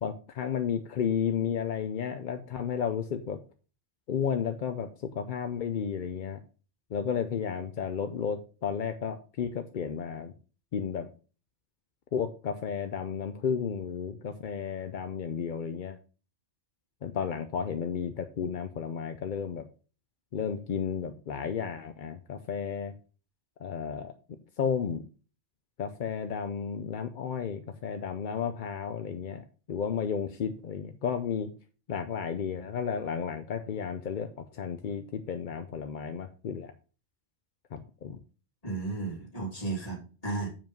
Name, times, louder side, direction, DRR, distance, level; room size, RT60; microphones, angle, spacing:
voice 1, 0.0-3.4 4.1-6.4 6.9-10.3 10.7-11.1 12.1-16.0 17.0-19.7 20.3-22.9 23.6-24.1 24.6-25.0 25.8-31.5 31.9-36.7 37.7-38.2, left 7 dB, 50° left, 8 dB, 0.6 m, -33 dB
voice 2, 38.6-40.5, right 3 dB, 30° left, -1 dB, 2.7 m, -34 dB
7.2 x 5.3 x 5.2 m, 0.37 s
omnidirectional pair, 1.3 m